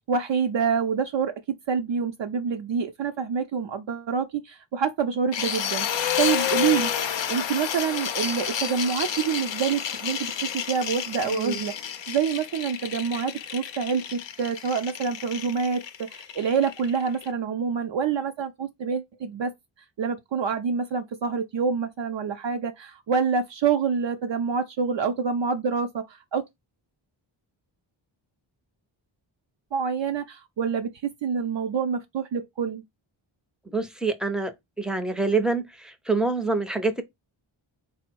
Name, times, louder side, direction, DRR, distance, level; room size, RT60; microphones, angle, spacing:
voice 1, 0.1-1.3 1.7-6.9 7.3-19.5 20.0-26.5 29.7-30.9 31.2-32.8, right 6 dB, 65° right, 0.6 m, -27 dB
sound 1, 5.3-17.3, left 9 dB, 65° left, 0.6 m, -30 dB
voice 2, 11.2-11.7 33.7-34.5 34.8-37.0, right 3 dB, ahead, 0.6 m, -26 dB
4.2 x 2.1 x 4.4 m
wide cardioid pair, 125°, 49 cm